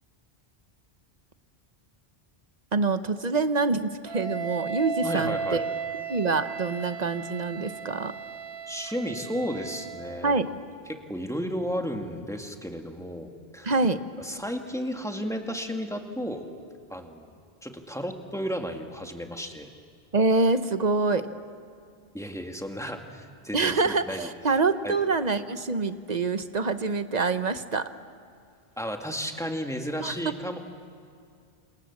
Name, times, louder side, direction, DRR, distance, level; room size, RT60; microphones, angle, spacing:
voice 1, 2.7-5.7 6.1-8.1 10.2-10.5 13.6-14.0 20.1-21.3 23.5-27.9 30.0-30.1, right 3 dB, 40° right, 10 dB, 1.1 m, -25 dB
Wind instrument woodwind instrument, 4.1-10.2, right 5 dB, 65° right, 1.7 m, -35 dB
voice 2, 5.0-5.6 8.7-10.4 10.9-13.7 14.2-16.5 16.9-19.7 22.1-24.3 24.8-25.0 28.8-30.6, equal, 5° left, 3 dB, 2.1 m, -33 dB
29.0 x 27.0 x 7.3 m, 2.3 s
omnidirectional pair, 1.1 m